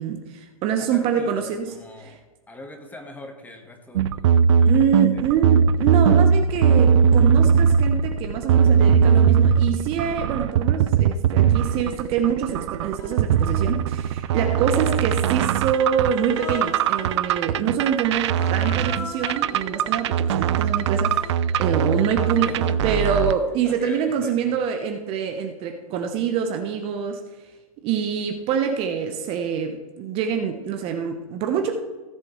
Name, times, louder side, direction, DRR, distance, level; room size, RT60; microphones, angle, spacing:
voice 1, 0.0-2.1 4.7-21.3 21.6-27.2 27.8-31.7, right 7 dB, 30° right, 5 dB, 1.0 m, -25 dB
voice 2, 0.8-5.2 22.4-22.9 23.6-24.5, left 1 dB, 10° left, 4 dB, 1.6 m, -42 dB
sound 1, 4.0-23.3, right 7 dB, 50° right, 0.5 m, -20 dB
Human voice, 11.7-11.9 12.9-13.8 14.4-15.5 16.2-17.3 18.2-23.5, left 3 dB, 80° left, 3.3 m, -40 dB
17.0 x 7.6 x 3.2 m, 1.2 s
hypercardioid pair, 125°, 19 cm